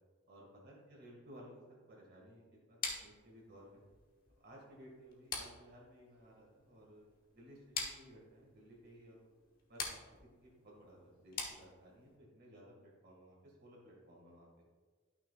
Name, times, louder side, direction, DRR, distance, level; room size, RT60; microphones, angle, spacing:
voice 1, 0.3-3.8 4.4-7.0 7.3-9.3 9.7-14.5, equal, 55° right, -4 dB, 2.1 m, -58 dB
sound 1, 2.8-12.2, left 4 dB, 45° left, 1.2 m, -46 dB
12.0 x 6.0 x 2.5 m, 1.4 s
head